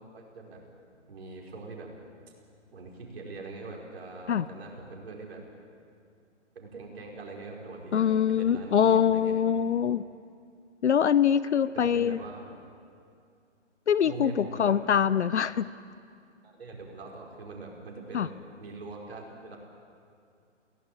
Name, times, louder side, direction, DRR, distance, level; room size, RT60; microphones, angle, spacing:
voice 1, 0.1-0.6 1.1-1.9 2.7-5.4 6.5-9.4 11.7-12.4 14.0-14.9 16.4-18.3 18.6-19.6, right 3 dB, 55° right, -1 dB, 5.0 m, -42 dB
voice 2, 7.9-10.0 10.8-12.2 13.9-15.7 18.1-18.3, left 8 dB, 65° left, 17 dB, 0.7 m, -24 dB
22.0 x 17.0 x 8.8 m, 2.4 s
hypercardioid pair, 145°, 36 cm